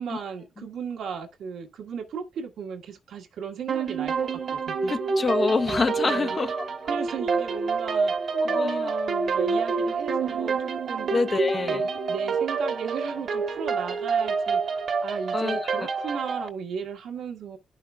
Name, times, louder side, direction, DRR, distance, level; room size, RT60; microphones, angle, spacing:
voice 1, 0.0-5.0 5.4-5.5 6.0-6.4 6.9-8.1 8.4-10.6 10.8-11.1 11.5-14.6 15.0-17.6, right 6 dB, 85° right, 1.5 m, -36 dB
sound 1, 3.7-16.5, right 4 dB, 70° right, 1.4 m, -27 dB
voice 2, 4.9-6.5 8.3-8.9 11.1-11.9 15.3-15.9, left 4 dB, 45° left, 0.7 m, -26 dB
11.0 x 5.6 x 2.3 m
cardioid pair, 75°, 0 cm